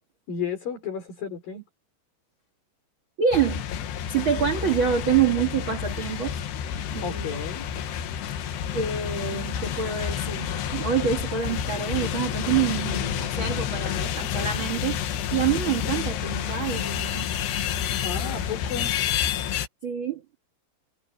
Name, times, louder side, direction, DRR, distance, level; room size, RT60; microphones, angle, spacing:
voice 1, 0.3-1.6 7.0-7.7 18.0-18.9, left 6 dB, 50° left, 6.7 m, -33 dB
voice 2, 3.2-3.6 4.1-6.4 6.9-7.4 8.7-15.0 15.3-17.3 19.8-20.4, right 8 dB, 85° right, 1.1 m, -26 dB
sound 1, 3.3-19.7, left 9 dB, 75° left, 3.6 m, -29 dB
omnidirectional pair, 5.1 m